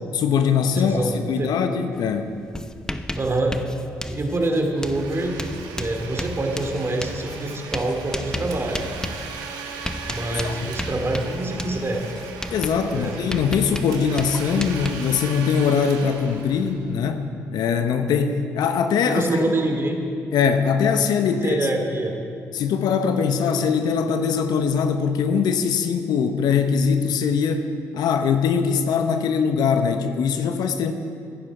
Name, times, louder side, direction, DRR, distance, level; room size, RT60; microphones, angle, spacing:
voice 1, 0.1-2.3 10.3-10.7 12.5-19.2 20.3-21.6 22.5-30.9, left 6 dB, 70° left, 8 dB, 0.9 m, -22 dB
voice 2, 0.7-1.5 3.2-3.6 4.1-5.4 5.7-8.8 10.1-12.0 12.9-13.1 19.0-20.0 21.3-22.2, right 2 dB, 35° right, 3 dB, 2.5 m, -25 dB
Writing, 2.0-2.1 2.4-15.5, left 1 dB, 10° left, 0.7 m, -34 dB
Domestic sounds home sounds, 4.7-17.2, right 5 dB, 80° right, 1.3 m, -38 dB
15.0 x 11.0 x 4.9 m, 2.4 s
hypercardioid pair, 55°, 7 cm